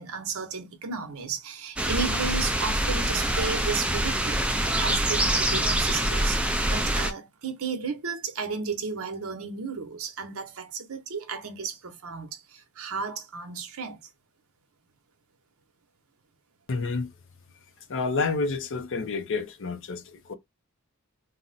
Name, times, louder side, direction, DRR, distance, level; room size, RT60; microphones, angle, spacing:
voice 1, 0.0-4.4 4.8-14.0, right 5 dB, 65° right, 0.7 m, -33 dB
sound 1, 1.8-7.1, right 1 dB, 5° right, 0.3 m, -25 dB
voice 2, 16.7-17.1 17.9-20.3, left 4 dB, 60° left, 0.5 m, -29 dB
2.6 x 2.0 x 3.9 m
head